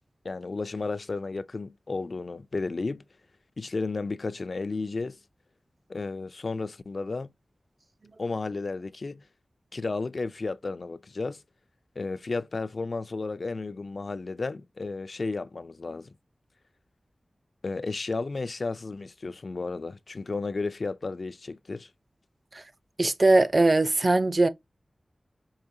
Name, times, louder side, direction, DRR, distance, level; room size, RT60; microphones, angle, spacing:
voice 1, 0.2-3.0 3.6-5.2 5.9-7.3 8.2-9.2 9.7-11.4 12.0-16.1 17.6-21.9, left 3 dB, 65° left, 0.3 m, -33 dB
voice 2, 23.0-24.5, right 2 dB, 45° right, 0.5 m, -21 dB
4.8 x 2.8 x 2.6 m
wide cardioid pair, 65°, 0 cm